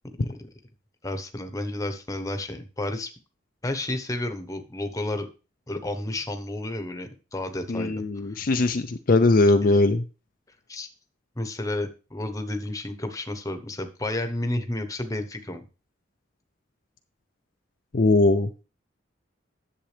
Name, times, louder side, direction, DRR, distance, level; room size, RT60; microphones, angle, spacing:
voice 1, 1.0-3.1 3.6-5.3 5.7-7.9 8.3-8.4 9.6-9.7 10.7-10.9 11.4-15.6, left 1 dB, 20° left, 7 dB, 1.0 m, -31 dB
voice 2, 7.7-10.0 17.9-18.6, left 2 dB, 50° left, 7 dB, 0.5 m, -20 dB
10.5 x 7.5 x 3.3 m, 0.32 s
head